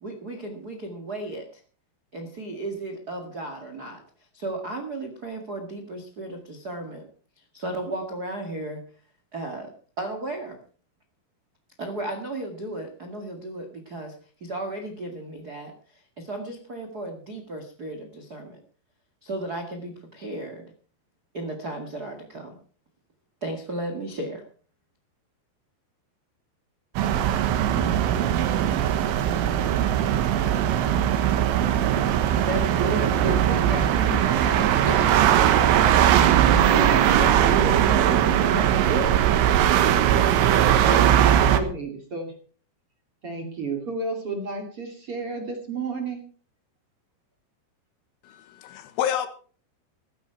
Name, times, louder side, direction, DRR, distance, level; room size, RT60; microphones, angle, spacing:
voice 1, 0.0-1.6 2.1-4.0 4.3-7.0 7.4-8.8 9.3-9.7 10.0-10.6 11.8-18.6 19.2-20.7 21.3-22.6 23.4-24.4 34.8-35.4, right 2 dB, 65° right, 4 dB, 0.9 m, -35 dB
sound 1, 27.0-41.6, right 10 dB, 80° right, 3.8 m, -20 dB
voice 2, 32.5-34.7 36.0-39.1 40.3-42.3 43.2-46.2, right 2 dB, 35° right, 3 dB, 2.9 m, -31 dB
voice 3, 48.2-49.3, left 10 dB, 85° left, 10 dB, 4.0 m, -29 dB
15.0 x 14.0 x 4.7 m, 0.42 s
omnidirectional pair, 5.6 m